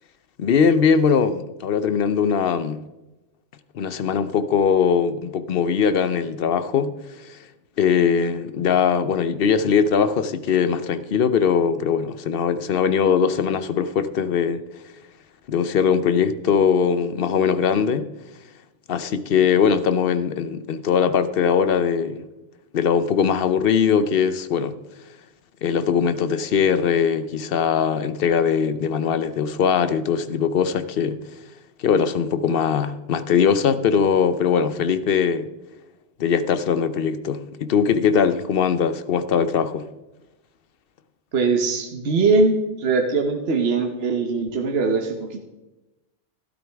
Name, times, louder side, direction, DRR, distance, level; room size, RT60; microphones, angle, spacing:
voice 1, 0.4-2.8 3.7-6.9 7.2-7.4 7.8-14.6 15.5-18.1 18.9-22.2 22.7-24.8 25.6-31.2 31.8-35.5 36.2-39.9, left 7 dB, 60° left, 0.8 m, -21 dB
voice 2, 41.3-45.4, right 4 dB, 60° right, 1.2 m, -21 dB
12.5 x 12.0 x 3.5 m
omnidirectional pair, 1.2 m